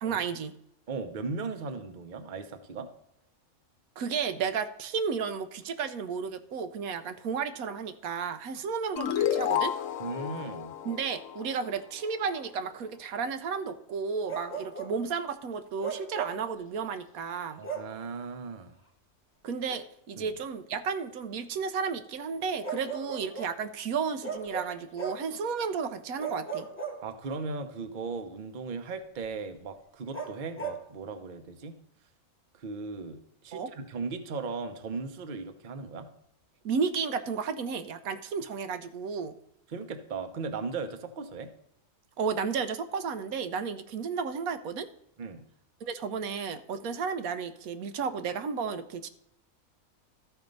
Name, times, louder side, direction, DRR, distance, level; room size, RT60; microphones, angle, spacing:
voice 1, 0.0-0.5 4.0-9.7 10.8-17.6 19.4-26.7 33.5-33.7 36.6-39.3 42.2-44.9 45.8-49.1, right 6 dB, 80° right, 9 dB, 1.1 m, -33 dB
voice 2, 0.9-2.9 10.0-10.7 17.6-18.8 20.2-20.3 27.0-31.7 32.5-36.1 39.7-41.5 45.2-45.5, right 4 dB, 40° right, 8 dB, 0.8 m, -37 dB
sound 1, 9.0-12.2, left 10 dB, 70° left, 1.0 m, -31 dB
Bark, 14.3-15.0 15.8-16.5 17.6-18.0 19.7-19.8 22.6-23.6 24.2-25.3 26.2-27.5 30.1-30.9, right 5 dB, 10° left, 1.0 m, -37 dB
13.0 x 4.5 x 5.2 m, 0.77 s
omnidirectional pair, 1.5 m